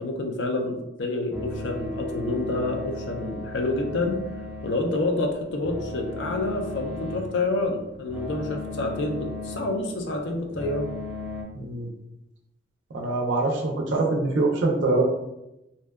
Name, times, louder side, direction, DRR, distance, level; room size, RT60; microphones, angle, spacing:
voice 1, 0.0-4.2 4.6-10.9, left 2 dB, 75° left, 2 dB, 0.4 m, -28 dB
sound 1, 1.3-11.4, left 2 dB, 10° right, 0.4 m, -36 dB
voice 2, 11.6-11.9 12.9-15.0, right 2 dB, 80° right, 0 dB, 0.4 m, -24 dB
2.6 x 2.1 x 2.2 m, 0.90 s
head